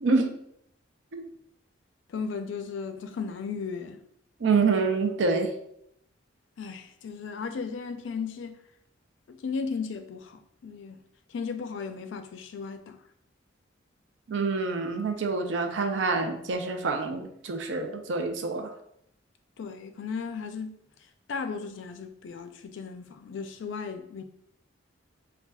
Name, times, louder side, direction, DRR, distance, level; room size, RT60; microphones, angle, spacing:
voice 1, 0.0-0.3 1.1-1.3 4.4-5.5 14.3-18.7, right 4 dB, 70° right, 0.5 m, -26 dB
voice 2, 2.1-4.0 6.6-8.6 9.3-11.0 11.3-13.0 19.6-20.8 21.3-24.2, left 5 dB, 70° left, 0.4 m, -35 dB
5.3 x 2.3 x 2.3 m
head